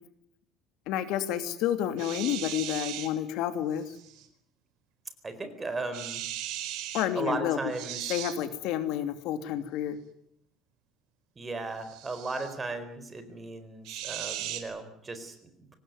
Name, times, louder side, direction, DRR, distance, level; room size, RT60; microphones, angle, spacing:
voice 1, 0.9-3.9 6.9-7.6 8.1-10.0, left 11 dB, 70° left, 9 dB, 2.8 m, -30 dB
sound 1, 2.0-3.1 3.9-4.2 5.9-7.1 7.7-8.3 11.8-12.5 13.8-14.6, right 12 dB, 70° right, 4.7 m, -37 dB
voice 2, 5.2-6.2 7.1-8.1 11.4-15.8, right 3 dB, 15° right, 9 dB, 4.4 m, -36 dB
25.5 x 19.0 x 9.5 m, 0.73 s
cardioid pair, 160°, 0 cm